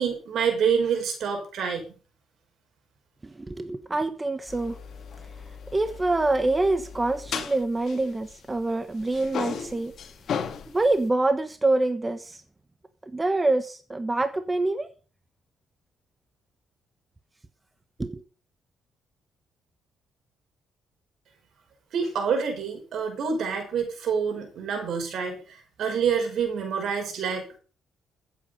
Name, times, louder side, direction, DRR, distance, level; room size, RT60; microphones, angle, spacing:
voice 1, 0.0-1.8 21.9-27.6, right 6 dB, 70° right, 5.5 m, -27 dB
voice 2, 3.2-4.8 5.7-9.9 10.7-12.4 13.0-14.9 18.0-18.2, right 2 dB, 20° right, 1.2 m, -26 dB
sound 1, 4.5-8.7 9.0-11.1, left 7 dB, 60° left, 2.1 m, -36 dB
15.0 x 8.4 x 5.2 m
cardioid pair, 90°, 0 cm